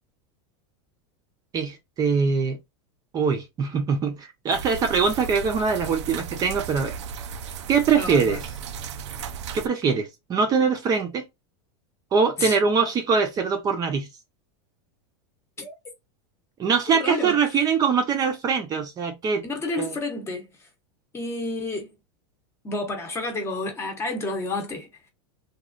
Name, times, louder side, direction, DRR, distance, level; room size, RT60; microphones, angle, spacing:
voice 1, 1.5-2.6 3.1-6.9 7.7-8.4 9.5-11.3 12.1-14.1 16.6-19.4 19.8-19.9, right 5 dB, 25° right, 0.7 m, -23 dB
sound 1, 4.5-9.7, right 7 dB, 90° right, 0.5 m, -35 dB
voice 2, 8.0-8.4 12.4-12.6 15.6-15.8 16.9-17.4 19.4-20.7 21.1-21.9 22.6-25.1, left 2 dB, 20° left, 0.9 m, -30 dB
3.1 x 2.4 x 2.4 m
supercardioid pair, 140°, 14 cm